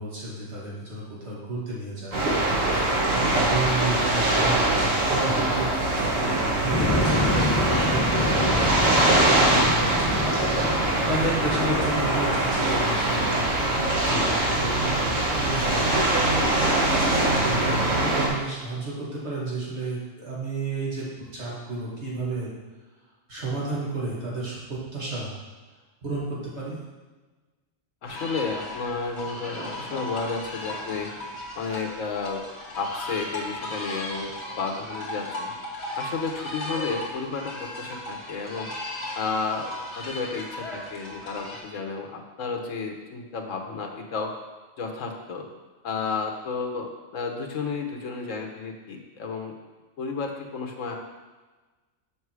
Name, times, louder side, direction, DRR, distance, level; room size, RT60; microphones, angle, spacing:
voice 1, 0.0-2.2 3.1-5.7 6.6-10.2 11.0-16.2 17.4-22.5 23.3-25.3 26.0-26.8, right 2 dB, 55° right, -7 dB, 2.6 m, -32 dB
sound 1, 2.1-18.3, right 1 dB, 75° right, 2.1 m, -23 dB
sound 2, 6.7-12.5, left 1 dB, 15° left, 0.6 m, -28 dB
voice 2, 28.0-31.1 31.5-32.4 32.7-35.5 36.0-38.7 39.1-44.3 44.8-45.5 45.8-49.5 50.0-51.0, left 4 dB, 75° left, 2 dB, 1.4 m, -32 dB
sound 3, 28.0-41.6, left 1 dB, 50° left, 1.6 m, -36 dB
7.2 x 5.7 x 4.8 m, 1.3 s
omnidirectional pair, 1.4 m